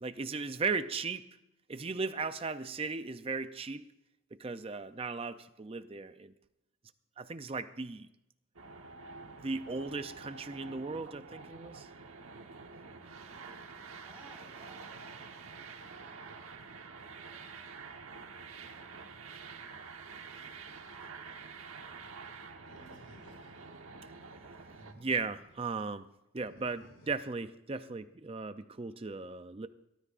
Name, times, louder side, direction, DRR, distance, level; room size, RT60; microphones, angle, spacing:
voice 1, 0.0-1.2 1.7-3.8 4.3-6.3 7.2-8.1 9.4-11.9 24.7-26.1 26.3-29.7, right 4 dB, 25° right, 11 dB, 0.5 m, -37 dB
sound 1, 8.6-24.9, right 4 dB, 75° right, 1.1 m, -48 dB
voice 2, 13.9-16.3 17.1-17.5, right 1 dB, 10° right, -2 dB, 4.1 m, -59 dB
Animal, 22.7-23.8 24.5-25.6 26.4-27.4, right 1 dB, 60° left, 6.8 m, -58 dB
25.5 x 13.5 x 2.5 m, 0.87 s
head